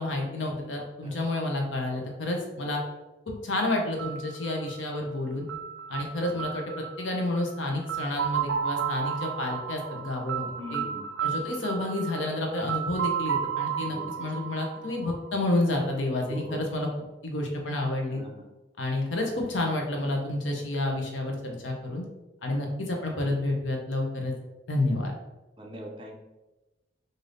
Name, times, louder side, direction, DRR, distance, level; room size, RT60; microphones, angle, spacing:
voice 1, 0.0-2.8 3.3-5.5 5.9-10.8 11.2-16.9 17.2-18.2 18.8-22.0 22.4-24.3 24.7-25.1, left 2 dB, 80° left, 1 dB, 0.8 m, -30 dB
sound 1, 4.0-15.8, right 8 dB, 75° right, 0.4 m, -33 dB
voice 2, 10.6-11.0 13.8-14.3 16.3-16.6 18.1-18.4 25.6-26.2, equal, 25° right, 1 dB, 0.5 m, -41 dB
3.3 x 2.6 x 3.9 m, 1.0 s
head